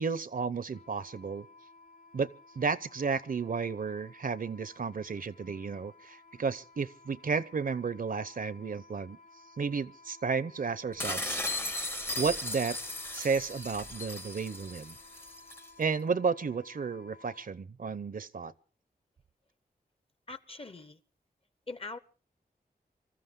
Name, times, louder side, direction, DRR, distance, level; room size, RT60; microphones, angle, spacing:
voice 1, 0.0-1.5 2.1-9.2 9.6-11.4 12.2-12.8 13.1-15.0 15.8-18.5, right 5 dB, 60° right, 0.7 m, -32 dB
Wind instrument woodwind instrument, 0.7-17.5, left 3 dB, 60° left, 3.8 m, -57 dB
sound 1, 11.0-15.7, left 1 dB, 15° left, 0.8 m, -37 dB
voice 2, 20.3-21.0 21.7-22.0, left 3 dB, 35° left, 0.9 m, -42 dB
25.5 x 14.0 x 3.7 m
wide cardioid pair, 95°, 16 cm